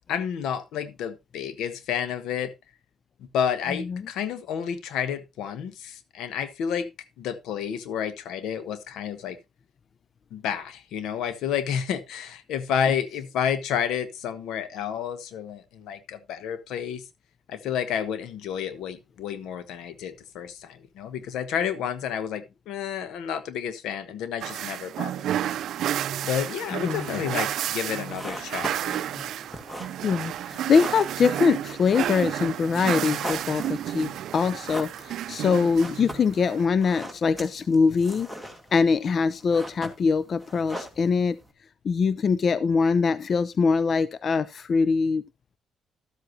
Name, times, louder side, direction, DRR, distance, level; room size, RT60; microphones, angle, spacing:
voice 1, 0.1-2.5 3.2-9.4 10.3-17.1 17.5-25.6 26.2-29.2, left 8 dB, 85° left, 1.1 m, -30 dB
sound 1, 24.4-36.6, right 11 dB, 75° right, 0.5 m, -31 dB
sound 2, 27.9-41.5, equal, 10° left, 2.1 m, -41 dB
voice 2, 30.0-38.3 38.7-41.4 41.8-45.3, left 5 dB, 50° left, 0.4 m, -23 dB
12.5 x 8.0 x 2.7 m
cardioid pair, 90°, 0 cm